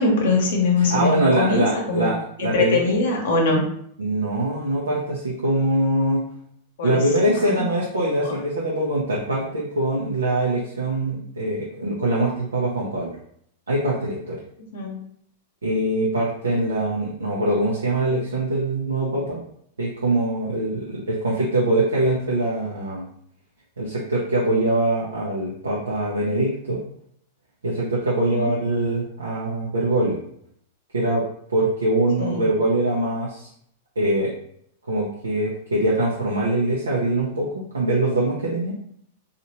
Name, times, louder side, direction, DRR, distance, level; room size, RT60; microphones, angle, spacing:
voice 1, 0.0-2.1 2.4-3.7 6.8-7.0 7.5-7.6 8.2-8.4 14.7-15.0 28.3-28.5 32.2-32.5, left 3 dB, 65° left, 0 dB, 0.8 m, -22 dB
voice 2, 0.8-2.8 4.0-6.3 6.8-13.1 13.7-14.4 15.6-19.4 19.8-23.1 23.8-26.8 27.6-30.2 30.9-31.2 31.5-33.5 34.0-34.3 34.9-38.7, right 1 dB, 85° right, -5 dB, 0.6 m, -23 dB
2.8 x 2.4 x 2.9 m, 0.68 s
hypercardioid pair, 100°, 0 cm